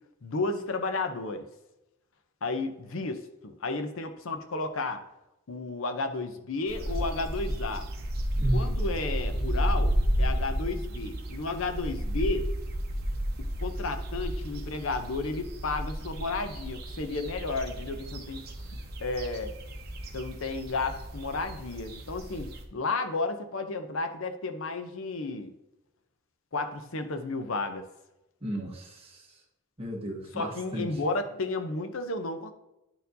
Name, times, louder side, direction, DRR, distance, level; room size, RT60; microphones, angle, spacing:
voice 1, 0.2-1.5 2.4-5.0 5.5-7.9 8.5-12.5 13.6-18.5 18.7-19.5 20.1-25.5 26.5-27.8 30.3-32.5, left 3 dB, 65° left, 7 dB, 0.6 m, -32 dB
sound 1, 6.7-22.6, equal, 45° right, 0.9 m, -32 dB
voice 2, 8.4-8.8 28.4-29.3 29.8-30.9, right 1 dB, 25° right, -2 dB, 1.3 m, -33 dB
10.5 x 4.4 x 2.7 m, 0.91 s
head